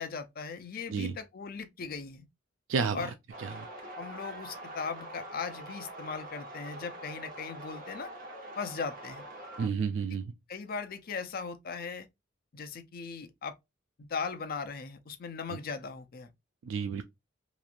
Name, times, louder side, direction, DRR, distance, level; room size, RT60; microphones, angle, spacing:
voice 1, 0.0-2.3 2.9-3.1 4.0-8.1 8.6-9.2 10.5-12.1 12.5-13.6 14.0-16.3, left 5 dB, 50° left, 0.5 m, -38 dB
voice 2, 2.7-3.1 3.4-3.7 9.6-10.3 16.6-17.0, right 5 dB, 75° right, 0.3 m, -31 dB
sound 1, 3.3-9.7, right 1 dB, 45° right, 0.8 m, -44 dB
3.0 x 2.4 x 2.4 m
head